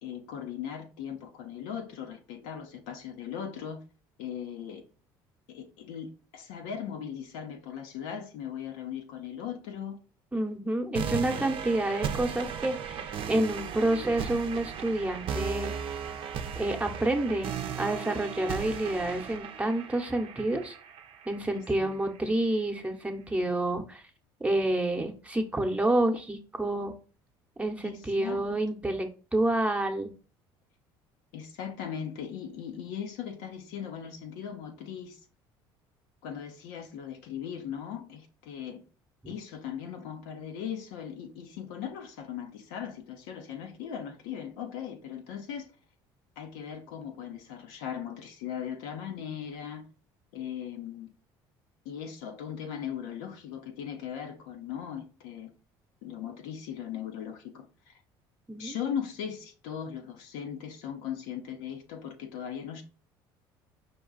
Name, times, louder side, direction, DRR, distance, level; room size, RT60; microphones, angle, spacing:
voice 1, 0.0-3.8 4.2-4.8 5.5-10.0 11.1-11.6 21.5-22.0 27.8-28.4 31.3-35.2 36.2-38.8 39.3-45.7 46.4-49.8 50.3-51.1 51.8-55.5 56.0-57.9 58.6-62.8, left 8 dB, 85° left, 0.9 m, -38 dB
voice 2, 10.3-15.7 16.6-17.5 17.8-20.7 21.3-24.0 24.4-26.9 27.6-30.1 39.2-39.3 58.5-58.7, right 1 dB, 10° right, 0.9 m, -29 dB
sound 1, 10.9-21.9, right 7 dB, 55° right, 0.6 m, -36 dB
5.2 x 2.3 x 3.9 m
supercardioid pair, 85°, 11 cm